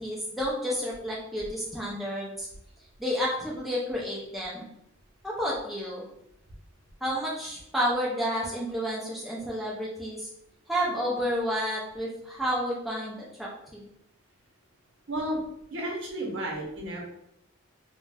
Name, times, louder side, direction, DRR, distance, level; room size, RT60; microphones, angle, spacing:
voice 1, 0.0-2.5 3.0-4.7 5.2-6.0 7.0-10.3 10.7-13.9, equal, ahead, -6 dB, 0.4 m, -30 dB
voice 2, 15.1-15.4 15.7-17.0, right 1 dB, 60° right, -1 dB, 0.7 m, -32 dB
2.4 x 2.1 x 3.3 m, 0.77 s
head